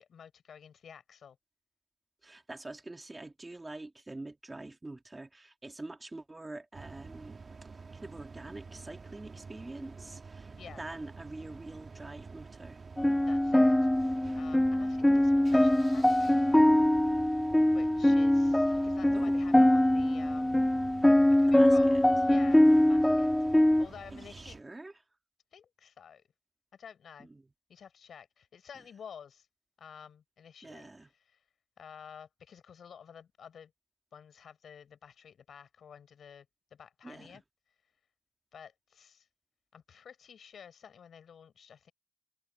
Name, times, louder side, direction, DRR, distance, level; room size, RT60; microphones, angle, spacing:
voice 1, 0.0-1.4 10.6-10.8 13.3-13.8 14.1-16.4 17.7-20.6 21.4-24.6 25.5-26.2 26.7-27.3 27.7-29.5 29.8-30.9 31.3-31.4 31.8-33.7 34.1-36.5 36.7-37.4 38.5-39.3 39.7-41.9, left 7 dB, 75° left, 5.3 m, -51 dB
voice 2, 2.2-12.8 18.7-18.9 19.1-19.4 21.5-22.0 24.1-25.0 27.2-27.5 28.7-28.9 30.6-31.1 37.0-37.4, right 2 dB, 20° right, 2.4 m, -46 dB
sound 1, 6.7-24.6, right 4 dB, 45° right, 1.8 m, -48 dB
sound 2, 13.0-23.9, left 1 dB, 10° left, 0.3 m, -23 dB
cardioid pair, 85°, 0 cm